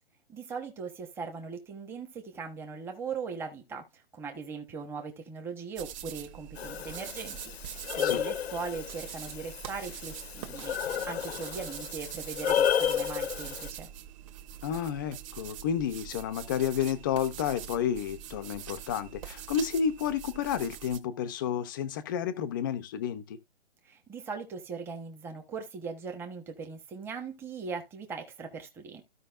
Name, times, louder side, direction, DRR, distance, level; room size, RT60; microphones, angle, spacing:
voice 1, 0.3-13.9 23.8-29.0, right 5 dB, 5° right, 1.1 m, -40 dB
sound 1, 5.8-21.0, right 10 dB, 30° right, 1.6 m, -44 dB
Breathing, 6.6-13.7, left 9 dB, 60° left, 0.8 m, -32 dB
voice 2, 14.6-23.4, left 8 dB, 20° left, 0.7 m, -31 dB
15.0 x 5.3 x 2.5 m
hypercardioid pair, 160°, 35 cm